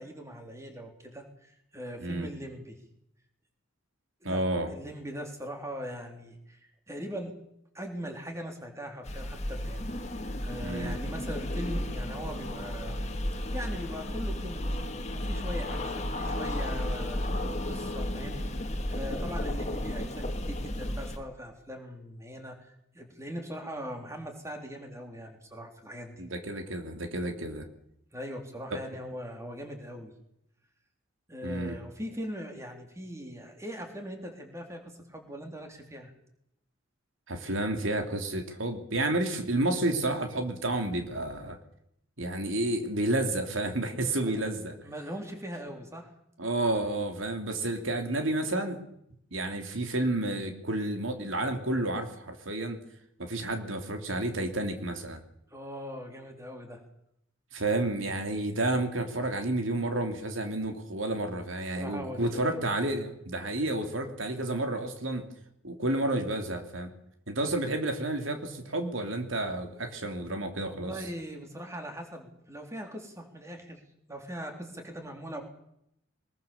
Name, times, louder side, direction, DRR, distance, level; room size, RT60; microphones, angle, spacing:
voice 1, 0.0-2.8 4.2-4.4 4.7-7.4 7.7-9.8 10.4-13.0 13.5-14.8 15.1-17.3 17.6-26.2 28.1-30.1 31.3-36.1 44.3-44.4 44.8-46.1 55.5-56.8 61.8-62.7 70.6-73.8 74.1-75.4, equal, 15° right, 4 dB, 3.6 m, -40 dB
voice 2, 4.2-4.7 10.6-11.0 26.2-27.7 31.4-31.8 37.3-41.6 42.2-44.7 46.4-48.8 49.3-52.8 53.2-55.2 57.5-65.2 65.6-66.9 67.3-70.9, right 2 dB, 70° right, 6 dB, 3.0 m, -30 dB
sound 1, 9.0-21.2, left 1 dB, 35° left, 2.0 m, -33 dB
23.0 x 21.5 x 7.2 m, 0.76 s
head